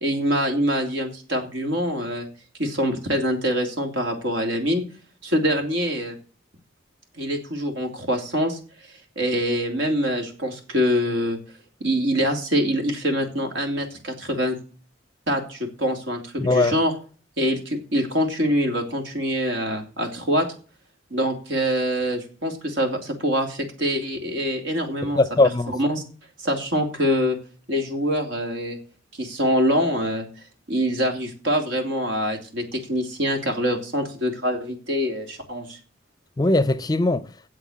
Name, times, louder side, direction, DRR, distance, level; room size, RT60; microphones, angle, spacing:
voice 1, 0.0-2.3 2.6-4.8 5.2-6.2 7.2-8.6 9.1-11.4 11.8-14.6 15.3-16.9 17.4-20.5 21.1-25.2 25.7-26.0 26.4-27.4 27.7-28.8 29.2-30.3 30.7-35.8, equal, 80° right, 3.1 m, -24 dB
voice 2, 16.4-16.8 25.0-25.8 36.4-37.3, left 2 dB, 20° left, 0.5 m, -20 dB
8.0 x 7.9 x 8.9 m
head